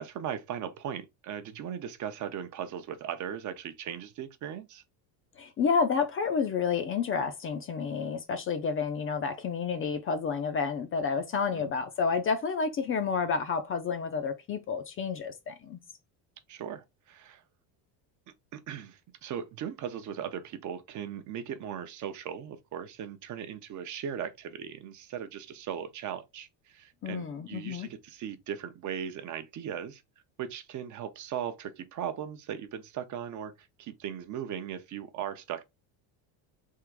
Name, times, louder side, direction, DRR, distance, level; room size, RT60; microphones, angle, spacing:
voice 1, 0.0-4.8 11.5-11.7 16.5-17.4 18.5-30.0 30.4-35.6, right 9 dB, 40° right, 0.6 m, -38 dB
voice 2, 5.4-15.8 27.0-27.9, left 5 dB, 30° left, 0.5 m, -30 dB
3.7 x 2.5 x 4.6 m
cardioid pair, 130°, 45 cm